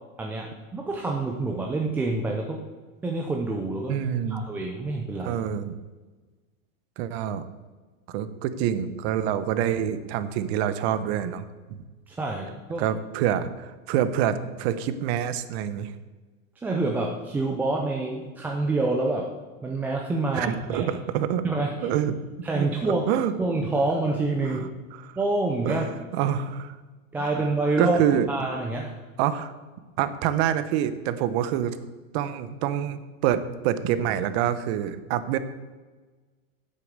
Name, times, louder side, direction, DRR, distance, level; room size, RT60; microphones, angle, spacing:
voice 1, 0.2-2.6 3.0-4.0 4.3-5.4 12.1-12.9 16.6-19.3 19.6-20.9 21.4-21.9 22.4-23.0 23.4-24.7 25.2-25.9 27.1-28.0 28.3-28.9, right 2 dB, 5° right, 0 dB, 0.3 m, -27 dB
voice 2, 3.9-4.4 5.2-5.7 7.0-7.5 8.1-11.8 12.8-15.9 20.3-21.4 21.8-22.2 22.5-23.3 24.4-25.2 25.6-26.8 27.2-27.3 27.8-28.3 29.2-29.5 30.0-31.8 32.1-35.4, right 10 dB, 50° right, 13 dB, 0.9 m, -26 dB
8.7 x 8.0 x 6.5 m, 1.3 s
supercardioid pair, 135°, 41 cm